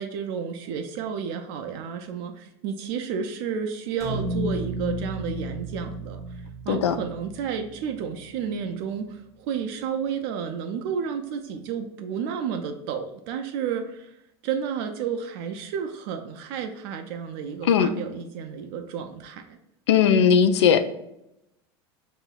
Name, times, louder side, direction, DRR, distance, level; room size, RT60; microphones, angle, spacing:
voice 1, 0.0-14.1 14.4-19.6, right 7 dB, 65° right, 6 dB, 0.4 m, -31 dB
sound 1, 4.0-8.2, right 1 dB, 20° left, 1.2 m, -33 dB
voice 2, 19.9-20.8, left 7 dB, 85° left, 11 dB, 0.4 m, -18 dB
4.9 x 2.6 x 2.3 m, 0.82 s
hypercardioid pair, 100°, 14 cm